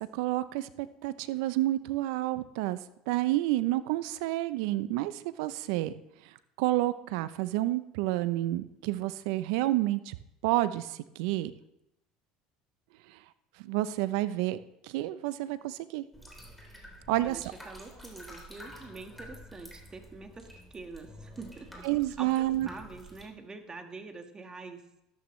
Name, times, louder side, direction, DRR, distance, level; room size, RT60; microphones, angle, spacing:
voice 1, 0.0-2.8 3.1-5.9 6.6-10.1 10.4-11.5 13.6-16.0 17.1-17.4 21.8-22.7, right 16 dB, 75° right, 14 dB, 0.7 m, -29 dB
sound 1, 16.1-23.3, equal, 5° left, 3.8 m, -49 dB
voice 2, 17.1-21.8 22.2-24.8, right 3 dB, 25° right, 5 dB, 1.7 m, -45 dB
13.0 x 12.5 x 3.3 m, 0.85 s
hypercardioid pair, 85°, 3 cm